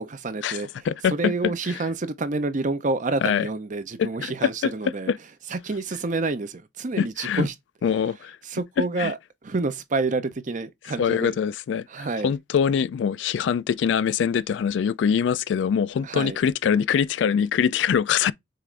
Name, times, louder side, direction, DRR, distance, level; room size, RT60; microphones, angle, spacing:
voice 1, 0.0-5.1 5.5-7.5 8.4-11.4 11.9-12.3 16.0-16.4, right 3 dB, 45° right, 0.6 m, -28 dB
voice 2, 0.9-1.3 3.2-3.5 4.0-4.7 5.1-5.2 7.0-7.5 7.8-8.4 9.0-9.1 11.0-18.3, left 7 dB, 70° left, 0.3 m, -23 dB
6.6 x 2.5 x 3.2 m
head